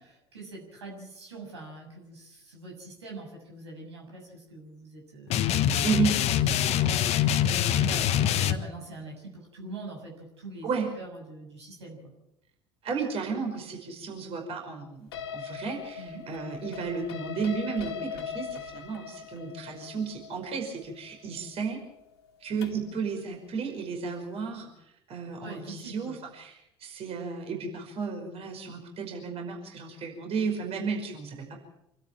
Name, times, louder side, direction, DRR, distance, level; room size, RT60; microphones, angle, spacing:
voice 1, 0.0-6.1 6.4-7.2 7.8-10.7 11.0-12.0 16.0-16.3 25.4-26.2, right 2 dB, 85° right, 0 dB, 7.1 m, -43 dB
sound 1, 5.3-8.5, left 10 dB, 50° left, 1.4 m, -24 dB
voice 2, 12.8-21.8 22.4-31.6, right 5 dB, 45° right, 2 dB, 5.3 m, -33 dB
sound 2, 15.1-22.9, left 7 dB, 75° left, 2.5 m, -40 dB
26.5 x 13.0 x 8.8 m, 0.84 s
hypercardioid pair, 70°, 14 cm